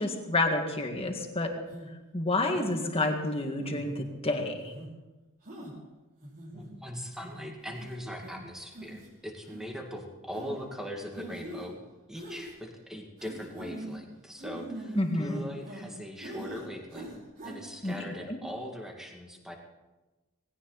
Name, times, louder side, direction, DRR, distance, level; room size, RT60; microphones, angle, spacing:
voice 1, 0.0-1.5 2.1-4.7 14.9-15.4 17.8-17.9 18.3-18.4, left 2 dB, 25° left, 4 dB, 1.9 m, -29 dB
sound 1, 1.7-1.9 2.5-3.1 3.6-4.1 4.6-4.9 5.5-5.7 6.2-6.7 7.2-7.3 7.7-7.9 8.2-8.3 8.7-9.1 9.4-9.6 10.3-10.5 11.1-11.7 12.1-12.5 13.2-13.9 14.4-15.9 16.2-16.6 16.9-17.6 17.8-18.0, right 1 dB, 40° right, 5.1 m, -42 dB
voice 2, 6.5-11.8 12.1-17.2 17.4-19.6, equal, ahead, 1 dB, 2.2 m, -41 dB
19.0 x 17.0 x 4.1 m, 1.1 s
head